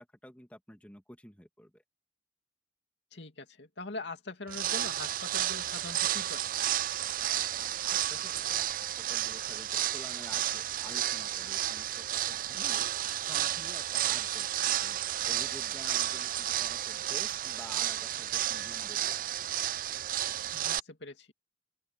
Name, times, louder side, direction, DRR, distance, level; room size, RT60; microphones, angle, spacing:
voice 1, 0.0-1.8 7.5-7.6 7.8-12.9 13.3-15.0 15.3-19.2, equal, 10° left, 2.3 m, -51 dB
voice 2, 3.1-6.5 15.9-16.0 20.5-21.3, left 2 dB, 75° left, 2.5 m, -43 dB
sound 1, 4.5-20.8, right 12 dB, 50° right, 0.4 m, -32 dB
open air
head